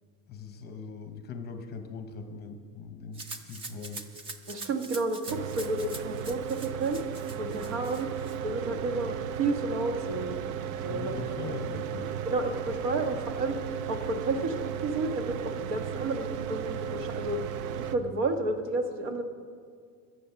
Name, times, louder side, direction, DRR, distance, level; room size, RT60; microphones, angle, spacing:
voice 1, 0.3-4.0 10.9-12.1, left 4 dB, 25° left, 7 dB, 0.8 m, -40 dB
Rattle (instrument), 3.1-8.4, right 3 dB, 15° right, 0.3 m, -44 dB
voice 2, 4.5-7.0 7.4-8.1 8.4-10.4 10.8-11.1 12.2-13.6 13.9-17.5 17.8-19.2, right 2 dB, 65° right, 6 dB, 1.6 m, -31 dB
Mechanical fan, 5.3-18.0, right 8 dB, 85° right, 0.8 m, -35 dB
21.0 x 7.6 x 5.9 m, 2.1 s
cardioid pair, 165°, 40 cm